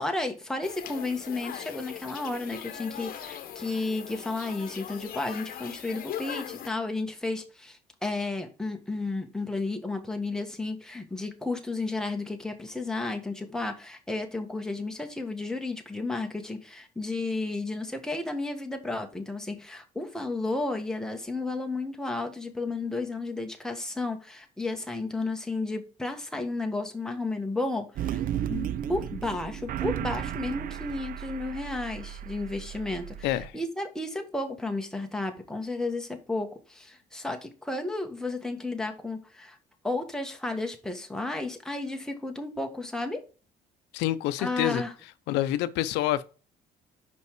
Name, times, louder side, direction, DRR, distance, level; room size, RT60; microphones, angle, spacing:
voice 1, 0.0-28.2 28.5-39.6 39.8-43.2 44.4-44.9, left 2 dB, 5° left, 1.4 m, -33 dB
sound 1, 0.6-6.7, left 10 dB, 60° left, 1.1 m, -40 dB
sound 2, 28.0-33.5, right 10 dB, 55° right, 0.5 m, -34 dB
voice 2, 33.2-33.6 43.9-44.8 45.3-46.2, left 14 dB, 90° left, 0.6 m, -27 dB
5.4 x 5.2 x 4.7 m
cardioid pair, 110°, 17 cm